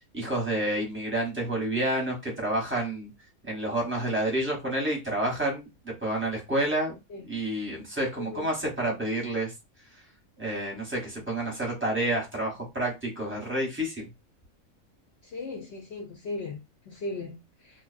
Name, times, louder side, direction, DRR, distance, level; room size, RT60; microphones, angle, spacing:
voice 1, 0.1-3.1 3.4-5.7 6.0-7.0 7.3-9.5 10.4-14.0, right 1 dB, 10° right, 0.8 m, -29 dB
voice 2, 15.3-16.6 16.9-17.4, left 2 dB, 65° left, 0.7 m, -36 dB
2.7 x 2.1 x 2.4 m
omnidirectional pair, 1.5 m